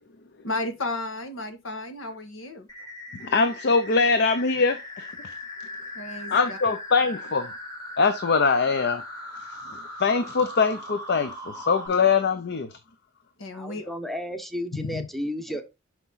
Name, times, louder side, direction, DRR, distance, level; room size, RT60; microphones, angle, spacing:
voice 1, 0.4-2.7 5.9-6.6 13.4-13.9, left 2 dB, 85° left, 1.5 m, -33 dB
sound 1, 2.7-11.9, left 1 dB, 20° left, 3.5 m, -39 dB
voice 2, 3.2-5.1 6.3-7.5 8.0-9.0 10.0-12.7 14.7-15.0, left 4 dB, 55° left, 0.6 m, -23 dB
voice 3, 13.5-15.6, equal, ahead, 0.9 m, -33 dB
6.0 x 5.9 x 4.0 m
head